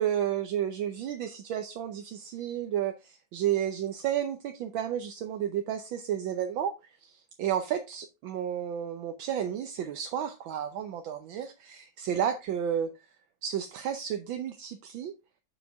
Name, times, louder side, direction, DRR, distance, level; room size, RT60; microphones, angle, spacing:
voice 1, 0.0-12.9 13.4-15.1, right 9 dB, 75° right, 1.6 m, -32 dB
7.3 x 7.0 x 3.5 m
omnidirectional pair, 2.2 m